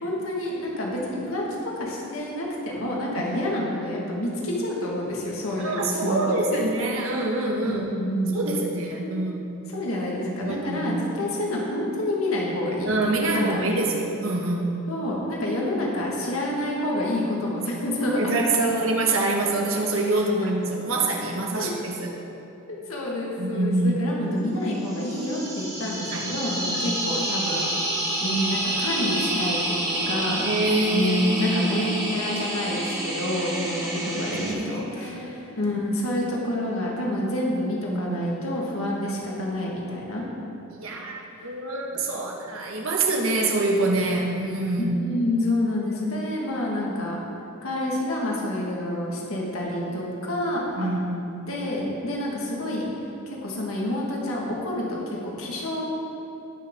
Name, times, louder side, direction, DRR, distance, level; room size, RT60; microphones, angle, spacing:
voice 1, 0.0-6.6 7.6-8.5 9.0-9.1 9.7-12.9 13.2-13.6 14.9-18.9 21.6-21.8 22.9-27.6 28.2-30.4 30.9-40.2 41.3-41.5 45.0-47.2 47.6-50.9 51.5-52.9 53.3-55.8, left 1 dB, 90° left, -3 dB, 2.0 m, -28 dB
voice 2, 5.5-8.0 8.3-9.5 10.4-10.9 12.8-14.8 17.5-17.6 18.1-22.1 23.4-24.0 26.1-26.3 26.7-26.8 30.4-32.0 34.3-35.6 37.9-38.3 40.7-44.9 50.7-51.3, right 2 dB, 75° right, 0 dB, 1.6 m, -26 dB
sound 1, 24.8-34.5, right 1 dB, 15° right, 1.6 m, -29 dB
19.0 x 6.4 x 3.8 m, 2.8 s
head